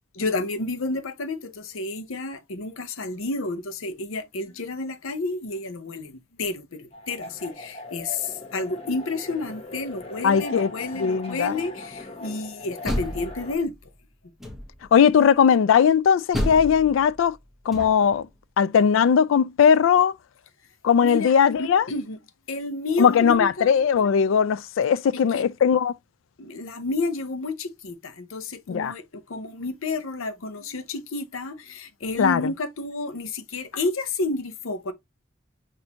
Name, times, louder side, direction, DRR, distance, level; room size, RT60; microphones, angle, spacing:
voice 1, 0.1-13.7 21.0-21.3 21.6-22.2 22.5-23.7 25.1-25.5 26.4-34.9, left 3 dB, 85° left, 0.8 m, -30 dB
sound 1, 6.9-13.6, left 2 dB, 30° left, 1.0 m, -40 dB
voice 2, 10.2-10.7 11.0-11.6 14.9-17.4 17.7-18.3 18.6-20.1 20.8-21.8 23.0-25.9 28.7-28.9 32.2-32.4, left 7 dB, 70° left, 0.3 m, -19 dB
Door, 12.6-13.8 14.4-15.0 16.3-18.2, left 1 dB, ahead, 1.1 m, -31 dB
6.1 x 2.7 x 2.7 m
head